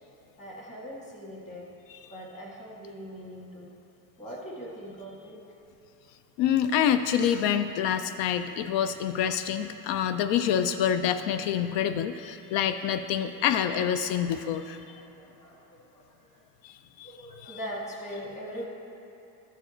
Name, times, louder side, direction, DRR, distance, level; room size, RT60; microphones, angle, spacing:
voice 1, 0.4-1.7 2.1-3.7 4.2-5.4 9.3-9.4 10.2-10.3 13.5-13.6 14.5-14.6 14.8-16.0 16.3-16.4 17.0-18.7, equal, 15° left, -4 dB, 1.5 m, -41 dB
voice 2, 6.4-14.8 16.6-17.1 17.4-17.6, left 9 dB, 85° left, 9 dB, 0.5 m, -27 dB
13.5 x 4.7 x 4.3 m, 2.9 s
cardioid pair, 165°, 41 cm